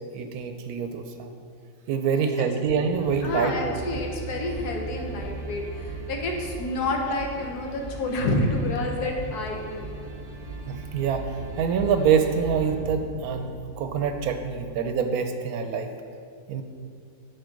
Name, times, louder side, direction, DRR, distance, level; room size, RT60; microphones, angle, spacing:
voice 1, 0.1-1.3 1.9-4.0 10.7-11.3 11.6-13.5 13.8-15.9 16.5-16.6, right 6 dB, 75° right, 6 dB, 1.0 m, -25 dB
sound 1, 2.9-14.9, right 3 dB, 55° right, 0.4 m, -38 dB
voice 2, 3.2-9.9, left 2 dB, 80° left, 1 dB, 1.5 m, -29 dB
7.9 x 4.6 x 5.1 m, 2.2 s
omnidirectional pair, 1.7 m